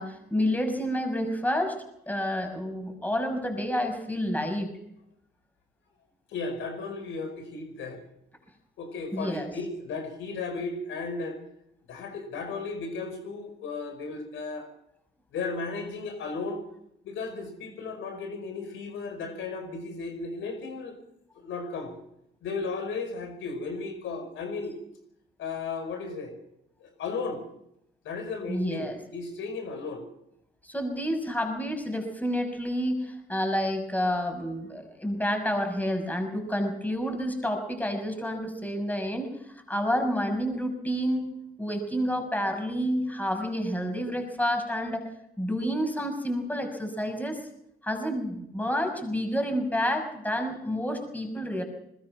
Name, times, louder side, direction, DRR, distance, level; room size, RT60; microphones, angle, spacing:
voice 1, 0.0-1.8 2.1-4.7 9.1-9.5 28.5-29.0 30.6-39.3 39.7-41.3 41.6-45.0 45.4-47.4 47.8-51.6, equal, 10° left, 5 dB, 6.2 m, -29 dB
voice 2, 6.3-8.0 8.8-11.4 11.9-14.7 15.3-16.6 17.0-21.0 21.4-21.9 22.4-24.8 25.4-26.3 26.8-27.4 28.0-30.0, left 4 dB, 80° left, 6 dB, 5.3 m, -35 dB
21.5 x 20.5 x 6.1 m, 0.79 s
cardioid pair, 90°, 20 cm